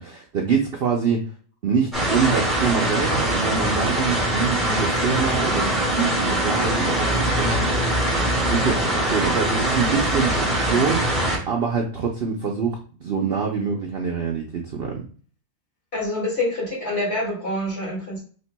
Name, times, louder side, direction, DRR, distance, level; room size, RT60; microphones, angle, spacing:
voice 1, 0.0-1.3 1.6-7.9 8.5-15.0, right 6 dB, 55° right, 1 dB, 0.7 m, -25 dB
sound 1, 1.9-11.4, right 1 dB, ahead, 1.6 m, -22 dB
voice 2, 15.9-18.2, left 1 dB, 45° left, -3 dB, 2.2 m, -26 dB
5.8 x 3.3 x 2.2 m, 0.42 s
omnidirectional pair, 1.6 m